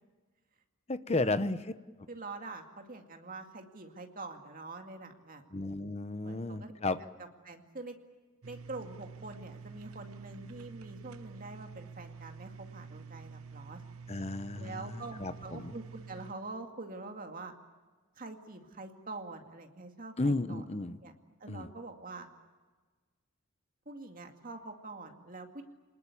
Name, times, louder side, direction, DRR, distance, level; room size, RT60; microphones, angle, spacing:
voice 1, 0.9-1.7 5.5-7.0 14.1-15.7 20.2-21.0 21.5-21.7, left 2 dB, 30° left, 12 dB, 0.9 m, -33 dB
voice 2, 2.1-5.4 6.2-6.7 7.4-8.0 8.4-13.8 14.6-17.5 18.2-20.6 21.0-21.1 21.4-22.3 23.9-25.6, right 3 dB, 40° right, 4 dB, 2.2 m, -45 dB
sound 1, 8.4-16.3, right 5 dB, 90° right, 0.8 m, -48 dB
27.0 x 20.0 x 8.5 m, 1.3 s
head